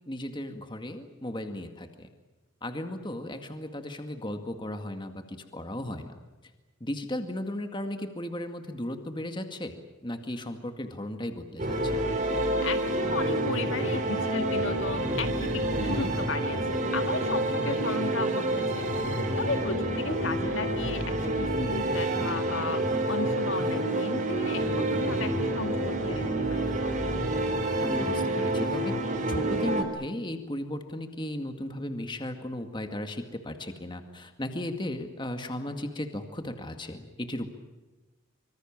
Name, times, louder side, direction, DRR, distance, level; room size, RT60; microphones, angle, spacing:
voice 1, 0.1-2.1 2.6-6.1 6.8-9.8 10.0-12.1 15.8-16.1 27.8-28.9 29.3-37.5, left 1 dB, 20° left, 6 dB, 2.1 m, -35 dB
sound 1, 11.6-29.8, right 1 dB, 35° right, 3.8 m, -28 dB
voice 2, 12.6-18.9 19.4-22.8 23.1-26.7, left 3 dB, 70° left, 7 dB, 1.9 m, -35 dB
25.5 x 25.0 x 7.5 m, 1.2 s
head